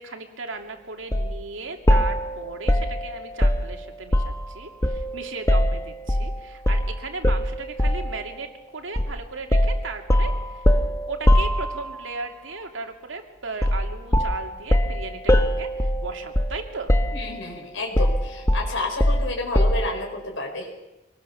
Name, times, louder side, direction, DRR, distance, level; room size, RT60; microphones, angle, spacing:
voice 1, 0.0-10.7 11.1-16.9, right 3 dB, 85° right, 4 dB, 2.7 m, -36 dB
sound 1, 1.1-1.3 1.9-4.5 4.8-6.3 6.7-6.9 7.2-8.1 9.0-9.2 9.5-12.1 13.6-13.9 14.1-16.6 16.9-17.5 18.0-19.9, equal, 15° left, 1.1 m, -21 dB
voice 2, 17.1-20.7, left 2 dB, 80° left, 0 dB, 4.9 m, -30 dB
25.5 x 19.0 x 7.1 m, 0.96 s
head